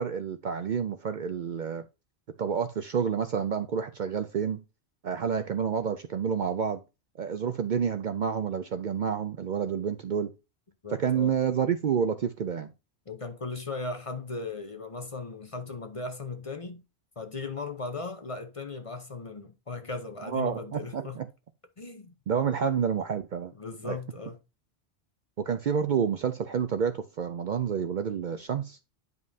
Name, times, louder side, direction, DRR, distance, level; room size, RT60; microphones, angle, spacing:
voice 1, 0.0-1.8 2.4-4.6 5.0-6.8 7.2-10.3 10.9-12.7 20.2-21.3 22.3-23.5 23.8-24.0 25.4-28.8, right 7 dB, 55° right, 0.6 m, -29 dB
voice 2, 10.8-11.4 13.1-16.8 17.2-21.2 21.8-22.1 23.5-24.4, left 3 dB, 35° left, 0.7 m, -37 dB
9.4 x 5.3 x 2.7 m
omnidirectional pair, 1.1 m